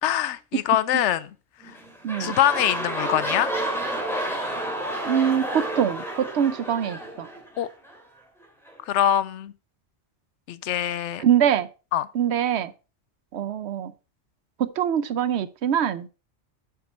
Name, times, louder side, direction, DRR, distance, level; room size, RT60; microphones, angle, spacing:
voice 1, 0.0-1.3 2.2-3.5 7.6-7.7 8.9-9.5 10.5-11.2 11.9-12.1, left 11 dB, 80° left, 0.9 m, -23 dB
sound 1, 1.6-8.0 8.7-8.8, right 1 dB, ahead, 2.5 m, -30 dB
voice 2, 2.0-2.4 5.0-7.3 11.2-11.7 12.1-12.7 13.3-13.9 14.6-16.1, right 9 dB, 70° right, 0.9 m, -24 dB
7.7 x 7.0 x 4.3 m
omnidirectional pair, 1.2 m